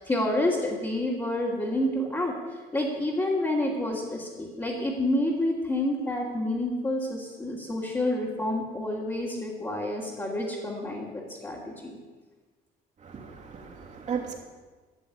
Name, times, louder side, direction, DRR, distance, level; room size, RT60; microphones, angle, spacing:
voice 1, 0.0-2.3 2.7-11.9, left 1 dB, 20° left, -6 dB, 2.7 m, -28 dB
voice 2, 13.0-14.3, right 7 dB, 45° right, 0 dB, 2.9 m, -35 dB
13.0 x 7.1 x 9.9 m, 1.3 s
cardioid pair, 110°, 17 cm